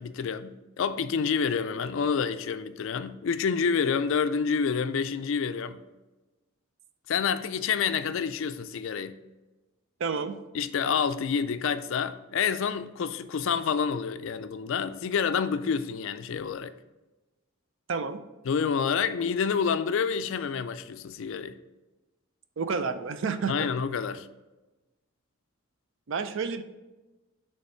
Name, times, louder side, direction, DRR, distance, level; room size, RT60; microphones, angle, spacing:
voice 1, 0.0-5.8 7.1-9.2 10.5-16.7 18.4-21.5 23.5-24.3, left 6 dB, 65° left, 0.4 m, -28 dB
voice 2, 10.0-10.4 17.9-18.2 22.6-23.6 26.1-26.6, right 5 dB, 60° right, 0.5 m, -30 dB
5.6 x 3.4 x 5.5 m
head